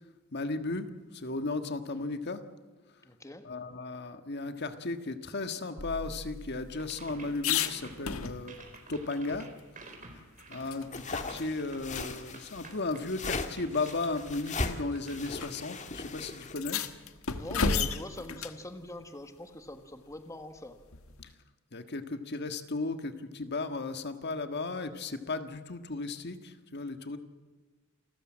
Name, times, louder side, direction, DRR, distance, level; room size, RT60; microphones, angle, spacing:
voice 1, 0.3-2.4 3.4-8.6 8.9-9.5 10.5-16.8 21.7-27.2, left 3 dB, 55° left, 8 dB, 1.5 m, -35 dB
voice 2, 3.0-3.5 17.3-20.8, left 1 dB, 15° left, 7 dB, 1.4 m, -43 dB
sound 1, 5.8-8.8 9.1-9.2 9.6-11.0 11.4-11.5 11.9-12.1 13.1-13.2 14.1-14.4 15.4-15.5 15.8-15.9 16.4-18.6 20.9-21.3, left 5 dB, 85° left, 1.5 m, -34 dB
sound 2, 6.7-15.6, right 3 dB, 40° right, 4.0 m, -52 dB
sound 3, 10.9-16.5, left 3 dB, 35° left, 1.7 m, -38 dB
28.5 x 14.0 x 7.5 m, 1.3 s
head